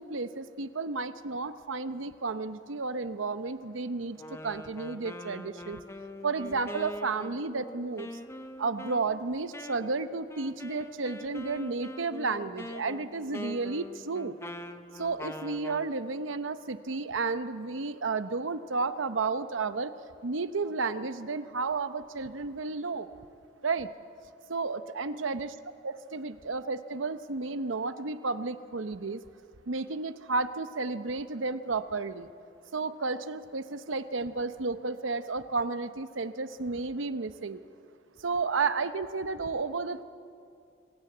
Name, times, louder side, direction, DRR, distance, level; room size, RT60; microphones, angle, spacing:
voice 1, 0.0-5.8 6.2-8.1 8.6-14.4 14.9-19.9 20.2-23.1 23.6-23.9 24.5-25.6 25.8-29.2 29.7-32.3 32.7-37.6 38.2-40.0, right 4 dB, 85° right, 12 dB, 0.9 m, -32 dB
Wind instrument woodwind instrument, 4.2-15.9, left 1 dB, 15° left, 0.7 m, -43 dB
24.5 x 16.5 x 7.9 m, 2.5 s
head